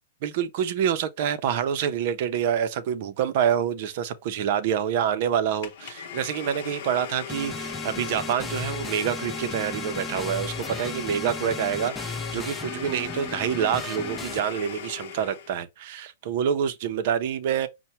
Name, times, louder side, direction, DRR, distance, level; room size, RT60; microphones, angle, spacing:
voice 1, 0.2-17.7, right 8 dB, 40° right, 0.6 m, -27 dB
Domestic sounds home sounds, 5.6-15.6, left 8 dB, 45° left, 0.8 m, -38 dB
sound 1, 7.3-14.4, left 2 dB, 5° left, 0.3 m, -36 dB
5.7 x 2.1 x 4.2 m
hypercardioid pair, 170°, 0 cm